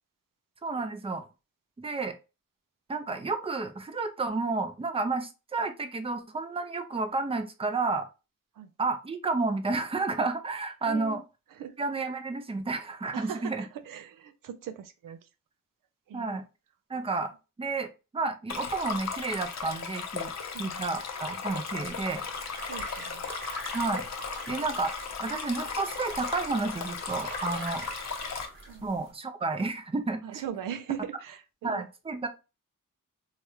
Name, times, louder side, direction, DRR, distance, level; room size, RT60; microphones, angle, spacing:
voice 1, 0.6-1.2 1.8-2.2 2.9-8.1 8.8-11.2 11.8-13.6 16.1-16.4 16.9-17.3 17.6-20.3 20.6-22.2 23.7-24.0 24.5-24.9 25.2-27.9 28.8-30.2 31.6-32.3, right 3 dB, 20° right, 0.5 m, -31 dB
voice 2, 10.9-11.2 11.5-11.7 13.1-15.3 16.1-16.5 20.5-21.0 22.6-23.3 28.7-28.9 30.2-31.9, right 9 dB, 85° right, 0.5 m, -40 dB
Stream, 18.5-28.5, left 6 dB, 55° left, 0.6 m, -36 dB
sound 1, 21.8-29.1, right 2 dB, 40° right, 1.0 m, -43 dB
3.0 x 2.4 x 2.8 m
cardioid pair, 80°, 32 cm